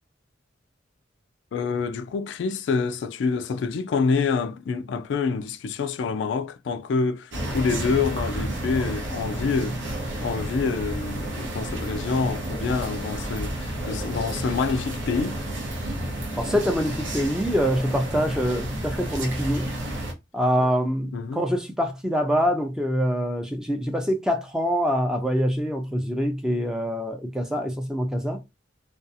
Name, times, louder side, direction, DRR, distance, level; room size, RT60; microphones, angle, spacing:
voice 1, 1.5-9.8 10.2-15.4 21.1-21.5, left 5 dB, 65° left, 0.3 m, -27 dB
sound 1, 7.3-20.1, right 1 dB, 80° right, 0.8 m, -31 dB
voice 2, 16.4-19.7 20.3-28.4, equal, 5° right, 0.4 m, -25 dB
2.6 x 2.3 x 2.6 m
head